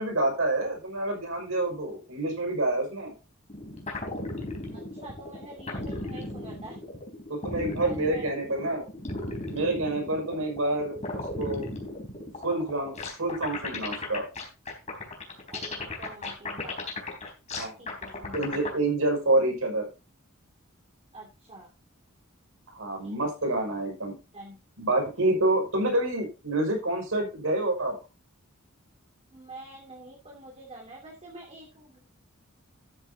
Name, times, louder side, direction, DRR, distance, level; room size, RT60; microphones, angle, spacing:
voice 1, 0.0-3.1 7.3-8.9 9.5-11.7 12.4-14.3 17.5-17.8 18.3-19.9 22.7-24.1 24.8-27.9, right 2 dB, 70° right, 2 dB, 5.9 m, -28 dB
sound 1, 3.5-18.7, left 2 dB, 35° left, 3.8 m, -36 dB
voice 2, 4.7-6.8 7.8-8.3 15.5-16.8 17.8-18.6 21.1-21.7 23.0-23.3 24.3-24.6 29.3-32.0, right 2 dB, 30° right, -2 dB, 2.6 m, -46 dB
13.0 x 9.5 x 2.8 m, 0.29 s
head